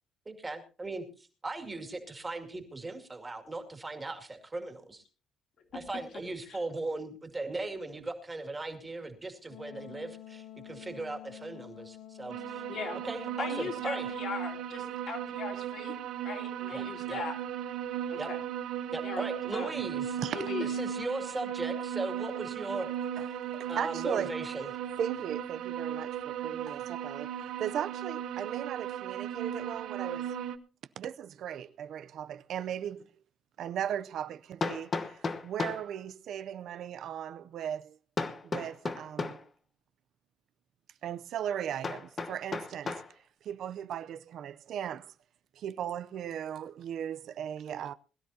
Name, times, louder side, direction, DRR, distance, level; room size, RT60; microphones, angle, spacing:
voice 1, 0.3-5.0 5.7-12.6 13.0-14.1 16.7-17.2 18.2-18.3 18.9-20.2 20.6-22.9 23.7-24.7, right 2 dB, 15° right, 2.3 m, -38 dB
Wind instrument woodwind instrument, 9.5-14.3, left 11 dB, 80° left, 0.9 m, -49 dB
sound 1, 12.3-30.6, right 9 dB, 75° right, 1.1 m, -36 dB
voice 2, 12.7-13.0 13.4-15.9 16.2-17.3 18.1-18.4 19.0-19.2 19.5-19.7 20.3-20.7, left 4 dB, 50° left, 3.4 m, -39 dB
voice 3, 23.5-24.3 25.0-30.3 31.0-33.1 33.6-38.0 38.4-39.4 41.0-45.1 45.5-47.9, right 9 dB, 55° right, 0.6 m, -37 dB
Hammer, 33.0-33.1 34.6-35.9 38.2-39.5 41.8-43.1, left 4 dB, 25° left, 1.1 m, -34 dB
21.5 x 13.0 x 2.8 m
cardioid pair, 170°, 0 cm